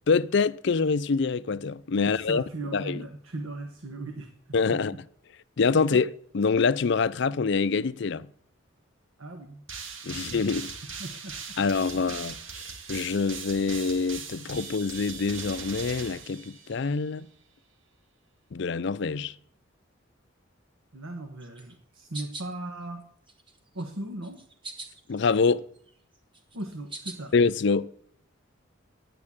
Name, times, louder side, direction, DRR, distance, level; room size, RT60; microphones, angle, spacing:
voice 1, 0.1-2.4 2.7-3.0 4.5-4.9 5.6-8.3 10.0-10.7 11.6-12.3 12.9-17.3 18.5-19.3 25.1-25.6 27.3-27.9, left 4 dB, 55° left, 0.5 m, -25 dB
voice 2, 2.0-4.3 4.7-5.0 9.2-9.6 10.1-10.4 11.0-11.3 20.9-23.0 23.7-24.4 26.5-27.3, right 2 dB, 85° right, 1.4 m, -38 dB
sound 1, 9.7-17.0, right 5 dB, 70° right, 1.7 m, -40 dB
sound 2, 21.4-22.5 23.0-23.8 24.2-25.3 25.6-27.4, right 2 dB, 25° right, 1.3 m, -43 dB
11.0 x 8.6 x 8.6 m
head